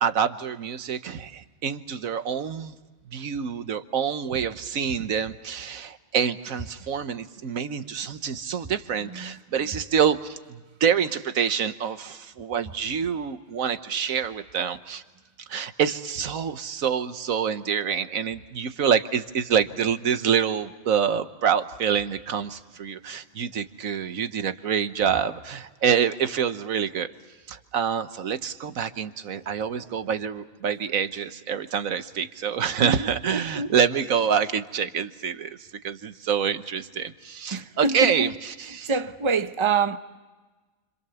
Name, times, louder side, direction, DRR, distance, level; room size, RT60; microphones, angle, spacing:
voice 1, 0.0-2.7 3.1-15.0 15.5-27.1 27.5-38.3 38.6-38.9, right 7 dB, 80° right, 1.5 m, -26 dB
voice 2, 29.7-30.1 32.8-33.7 37.5-38.4 38.7-40.0, right 4 dB, 25° right, 0.9 m, -27 dB
30.0 x 26.5 x 7.0 m
omnidirectional pair, 1.4 m